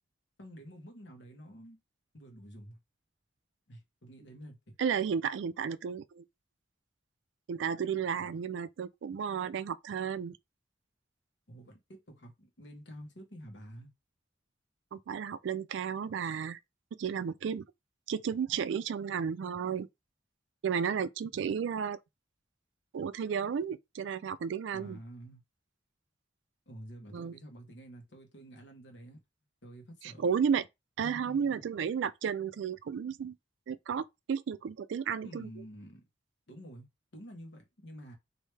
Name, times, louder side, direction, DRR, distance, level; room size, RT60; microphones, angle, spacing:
voice 1, 0.4-1.8 2.1-2.8 3.7-4.7 8.1-8.4 11.5-13.9 24.7-25.4 26.7-29.2 29.6-30.3 31.0-31.7 35.2-36.0 36.5-36.9 37.1-38.1, equal, 70° left, 1.1 m, -49 dB
voice 2, 4.8-6.2 7.5-10.4 14.9-16.6 16.9-17.7 18.1-19.9 20.6-22.0 22.9-25.0 27.1-27.3 30.0-30.6 31.0-33.4 33.7-35.5, right 7 dB, 75° right, 0.3 m, -33 dB
3.3 x 2.7 x 3.2 m
head